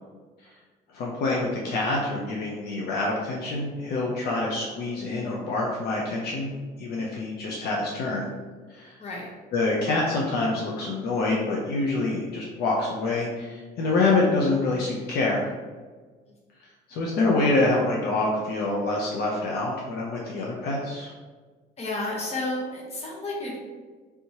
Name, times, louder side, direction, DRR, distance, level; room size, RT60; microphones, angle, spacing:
voice 1, 0.9-6.5 6.8-8.3 8.7-9.0 9.5-15.5 16.9-21.1, left 2 dB, 70° left, -3 dB, 0.6 m, -26 dB
voice 2, 9.0-9.3 16.3-16.4 21.8-23.6, left 2 dB, 40° left, -2 dB, 1.0 m, -31 dB
3.4 x 3.0 x 2.8 m, 1.4 s
cardioid pair, 110°, 17 cm